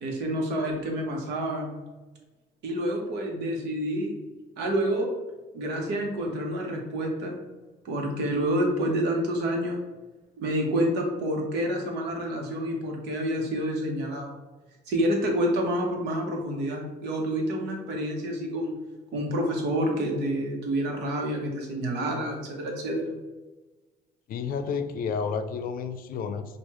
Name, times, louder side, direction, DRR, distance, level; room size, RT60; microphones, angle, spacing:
voice 1, 0.0-1.8 2.6-4.2 4.6-5.1 5.5-7.4 7.8-9.8 10.4-14.3 14.9-18.8 19.1-23.2, right 1 dB, 85° right, 1 dB, 1.1 m, -28 dB
voice 2, 24.3-26.5, left 6 dB, 60° left, 9 dB, 0.5 m, -30 dB
6.4 x 2.5 x 3.0 m, 1.2 s
cardioid pair, 110°, 17 cm